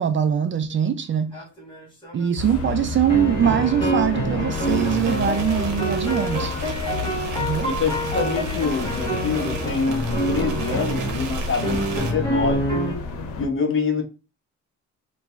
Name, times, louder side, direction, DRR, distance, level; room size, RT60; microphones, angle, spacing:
voice 1, 0.0-1.4 2.1-6.6 7.4-7.7, right 9 dB, 40° right, 0.4 m, -22 dB
sound 1, 1.3-2.3 3.1-11.3 11.6-13.0, right 1 dB, 15° left, 1.5 m, -27 dB
sound 2, 2.4-13.5, left 4 dB, 75° left, 0.9 m, -31 dB
sound 3, 4.5-12.1, right 5 dB, 90° right, 0.9 m, -36 dB
voice 2, 7.8-12.7 13.4-14.0, left 5 dB, 45° left, 1.0 m, -26 dB
2.9 x 2.6 x 3.4 m
cardioid pair, 90°, 30 cm